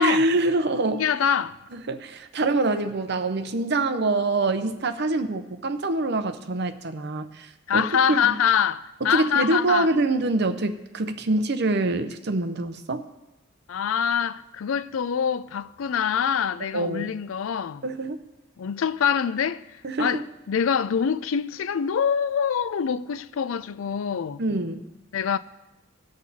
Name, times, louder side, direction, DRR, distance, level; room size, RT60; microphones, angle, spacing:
voice 1, 0.0-1.1 1.7-8.4 9.0-13.0 16.7-17.1 17.8-18.2 19.8-20.2 24.4-24.8, right 2 dB, 55° right, 0.8 m, -25 dB
voice 2, 0.9-1.6 7.7-9.9 13.7-17.8 18.6-19.6 20.0-20.2 20.5-24.4 25.1-25.4, left 7 dB, 75° left, 0.4 m, -25 dB
18.5 x 6.4 x 4.2 m
head